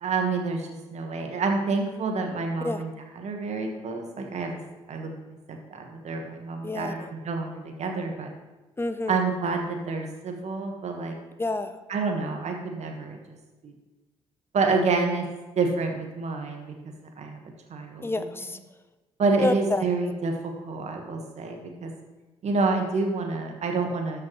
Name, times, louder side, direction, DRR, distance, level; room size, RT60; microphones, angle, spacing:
voice 1, 0.0-4.6 4.9-8.3 9.1-11.2 11.9-13.2 13.6-13.7 14.5-15.3 15.5-16.7 17.2-17.4 17.7-18.2 19.2-21.9 22.4-24.2, right 4 dB, 55° right, 3 dB, 1.6 m, -28 dB
voice 2, 6.6-7.1 8.8-9.2 11.4-11.8 18.0-18.6 19.4-19.8, left 2 dB, 15° left, 10 dB, 0.8 m, -28 dB
13.0 x 5.7 x 3.3 m, 1.2 s
hypercardioid pair, 45°, 14 cm